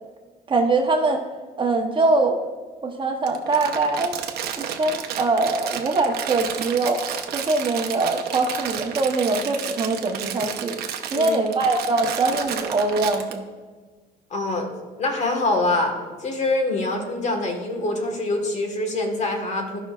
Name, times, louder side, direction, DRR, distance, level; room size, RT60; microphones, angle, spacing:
voice 1, 0.5-1.2 1.6-2.4 2.8-4.2 4.6-7.0 7.3-10.8 11.1-13.4, right 3 dB, 30° right, 2 dB, 1.0 m, -22 dB
Crumpling crinkling, 3.2-13.3, right 9 dB, 70° right, 0.9 m, -31 dB
voice 2, 11.1-11.4 14.3-14.7 15.0-15.9 16.2-19.8, left 2 dB, 45° left, 3 dB, 1.5 m, -24 dB
16.0 x 5.6 x 2.4 m, 1.4 s
cardioid pair, 110°, 17 cm